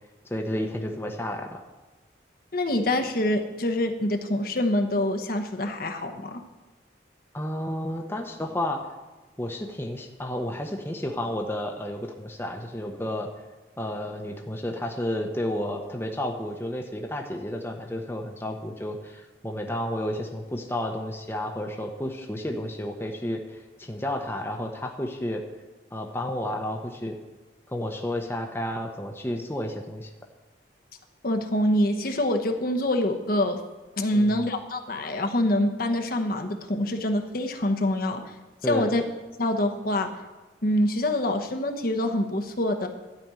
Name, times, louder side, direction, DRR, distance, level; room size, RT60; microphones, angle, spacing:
voice 1, 0.2-1.6 7.3-8.8 9.4-13.3 13.8-25.4 25.9-27.2 27.7-30.1 34.1-34.5 38.6-38.9, left 1 dB, 15° left, 2 dB, 0.8 m, -31 dB
voice 2, 2.5-6.4 31.2-33.6 34.0-38.2 38.6-39.0 39.4-40.1 40.6-42.9, left 1 dB, 50° left, 5 dB, 1.0 m, -25 dB
12.5 x 5.2 x 8.9 m, 1.2 s
head